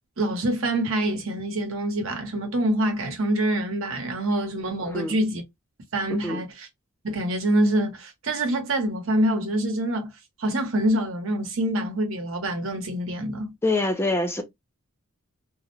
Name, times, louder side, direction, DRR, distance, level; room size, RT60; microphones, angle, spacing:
voice 1, 0.2-5.4 5.9-6.7 7.0-10.1 10.4-13.5, right 1 dB, 70° right, 0.9 m, -25 dB
voice 2, 13.6-14.4, left 2 dB, 10° left, 0.3 m, -25 dB
2.4 x 2.0 x 2.9 m
head